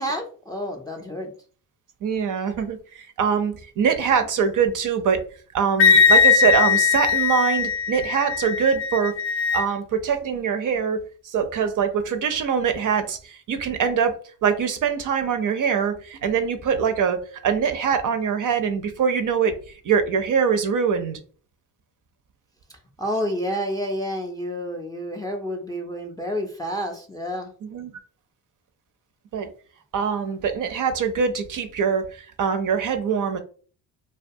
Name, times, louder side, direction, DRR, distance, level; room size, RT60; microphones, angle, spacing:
voice 1, 0.0-1.3 23.0-27.5, equal, 10° left, 0.4 m, -29 dB
voice 2, 2.0-5.2 5.5-9.2 9.5-14.2 14.4-19.5 19.8-21.2 27.6-27.9 29.3-29.5 29.9-33.4, right 6 dB, 45° right, 0.5 m, -23 dB
Wind instrument woodwind instrument, 5.8-9.6, left 6 dB, 65° left, 0.5 m, -19 dB
2.3 x 2.3 x 2.6 m
supercardioid pair, 70°, 44 cm